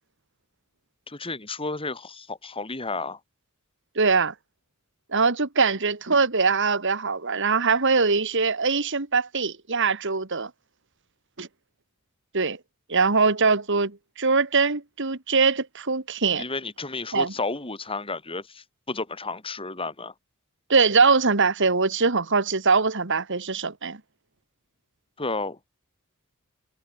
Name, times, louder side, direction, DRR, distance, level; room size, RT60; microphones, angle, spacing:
voice 1, 1.1-3.2 16.4-20.1 25.2-25.6, left 3 dB, 25° left, 4.3 m, -32 dB
voice 2, 4.0-4.3 5.1-10.5 11.4-11.5 12.3-12.6 12.9-16.4 17.1-17.3 20.7-24.0, right 4 dB, 60° right, 2.1 m, -22 dB
head